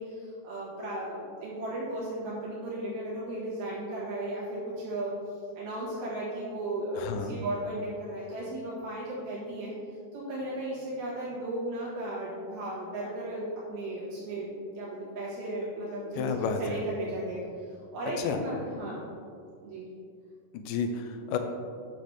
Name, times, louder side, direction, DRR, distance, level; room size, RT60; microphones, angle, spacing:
voice 1, 0.0-5.1 5.6-9.7 10.1-17.4 17.9-19.0 19.6-19.9, right 1 dB, 90° right, -9 dB, 3.4 m, -35 dB
voice 2, 7.0-7.4 16.2-16.8 18.2-18.4 20.5-21.4, left 6 dB, 80° left, 6 dB, 2.1 m, -31 dB
7.8 x 6.8 x 3.3 m, 2.3 s
omnidirectional pair, 4.2 m